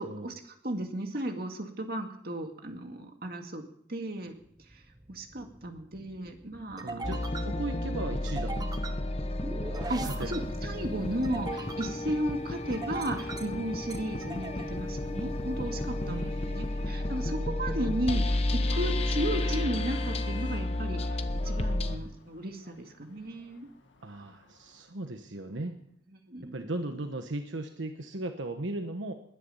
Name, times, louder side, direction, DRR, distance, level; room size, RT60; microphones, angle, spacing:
voice 1, 0.0-3.6 3.9-4.3 4.7-4.8 5.1-7.1 9.9-23.7 26.3-26.7, right 1 dB, 55° right, 4 dB, 2.2 m, -35 dB
sound 1, 4.4-17.2, right 2 dB, 20° right, 1.1 m, -43 dB
voice 2, 6.8-8.9 10.0-10.4 16.0-17.2 21.8-22.1 24.0-25.8 26.4-29.1, right 2 dB, 85° right, 6 dB, 1.2 m, -38 dB
sound 2, 7.0-22.0, left 1 dB, 30° left, 1.0 m, -32 dB
Vehicle horn car horn honking, 18.4-24.8, left 5 dB, 85° left, 1.9 m, -49 dB
20.5 x 10.0 x 5.6 m, 0.66 s
head